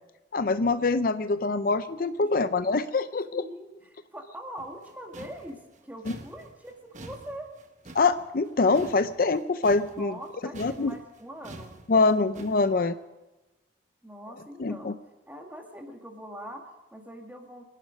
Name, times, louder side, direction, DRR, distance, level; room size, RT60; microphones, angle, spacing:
voice 1, 0.3-3.4 7.9-10.1 10.6-10.9 11.9-13.0 14.6-14.9, left 3 dB, 55° left, 12 dB, 0.5 m, -24 dB
voice 2, 3.3-7.5 9.9-11.8 14.0-15.0 15.3-17.6, right 1 dB, 10° right, 2 dB, 2.0 m, -43 dB
sound 1, 4.6-10.3 10.5-12.7, right 1 dB, 45° right, 1.2 m, -47 dB
25.5 x 11.0 x 5.2 m, 1.1 s
head